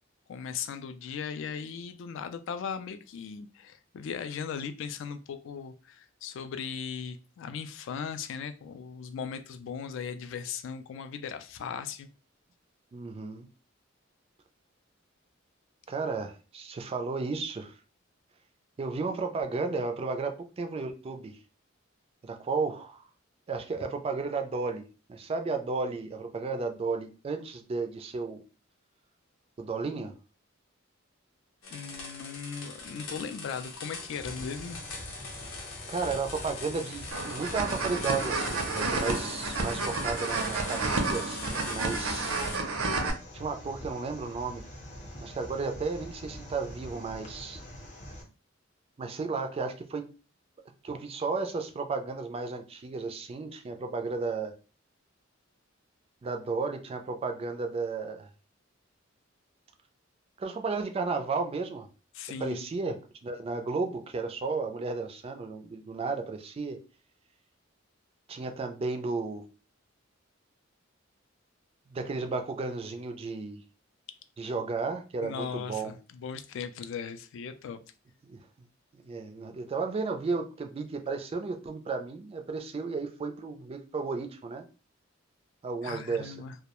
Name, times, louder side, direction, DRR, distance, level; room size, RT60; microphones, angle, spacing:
voice 1, 0.3-12.1 31.7-34.8 62.1-62.7 75.2-77.8 85.8-86.6, left 6 dB, 65° left, 0.3 m, -38 dB
voice 2, 12.9-13.5 15.9-17.7 18.8-21.4 22.2-23.0 23.5-24.8 25.1-28.4 29.6-30.2 35.9-42.3 43.3-44.6 45.2-47.6 49.0-50.0 50.8-54.5 56.2-58.3 60.4-61.9 62.4-63.0 63.2-66.8 68.3-69.4 71.9-73.6 74.4-75.9 78.2-78.4 78.9-84.6 85.6-86.3, right 4 dB, 30° right, 0.3 m, -33 dB
sound 1, 31.6-42.6, left 4 dB, 85° left, 0.7 m, -41 dB
sound 2, 33.9-48.2, equal, 35° left, 0.6 m, -45 dB
sound 3, 37.1-43.1, right 3 dB, 85° right, 0.5 m, -31 dB
2.2 x 2.1 x 2.9 m
head